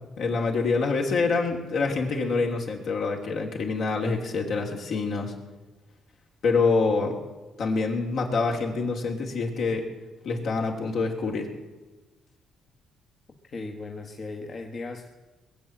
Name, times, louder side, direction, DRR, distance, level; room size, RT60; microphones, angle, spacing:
voice 1, 0.2-5.3 6.4-7.2 7.6-9.9 10.2-11.5, left 4 dB, 70° left, 1 dB, 2.8 m, -26 dB
voice 2, 13.5-15.1, left 3 dB, 45° left, 2 dB, 1.3 m, -37 dB
21.0 x 7.6 x 7.7 m, 1.2 s
cardioid pair, 90°, 0 cm